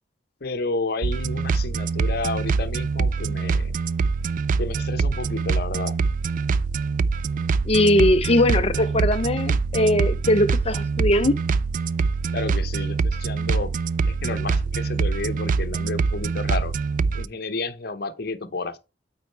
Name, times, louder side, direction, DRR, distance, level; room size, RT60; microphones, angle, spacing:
voice 1, 0.4-3.7 4.6-5.9 12.3-13.8 14.1-16.7 17.1-18.8, left 3 dB, 60° left, 0.9 m, -31 dB
sound 1, 1.0-17.3, right 4 dB, 45° right, 0.3 m, -24 dB
voice 2, 7.6-11.4, left 1 dB, 35° left, 0.6 m, -20 dB
8.5 x 4.3 x 4.5 m
head